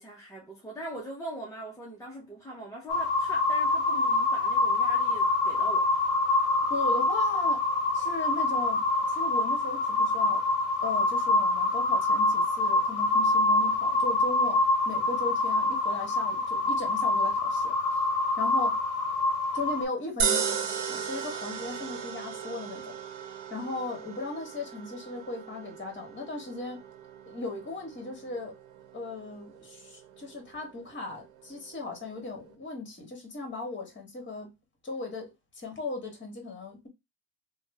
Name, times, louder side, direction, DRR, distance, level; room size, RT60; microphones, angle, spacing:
voice 1, 0.0-5.9, right 1 dB, 5° left, 0.6 m, -41 dB
sound 1, 2.9-19.9, left 2 dB, 55° left, 0.8 m, -26 dB
voice 2, 6.7-7.6 7.9-10.4 10.8-18.0 18.4-18.8 19.5-22.9 23.5-26.8 27.3-28.5 28.9-34.5 34.8-36.9, left 3 dB, 25° left, 1.5 m, -37 dB
sound 2, 20.2-32.5, right 7 dB, 80° right, 1.0 m, -37 dB
3.0 x 2.2 x 3.2 m
supercardioid pair, 115°, 45 cm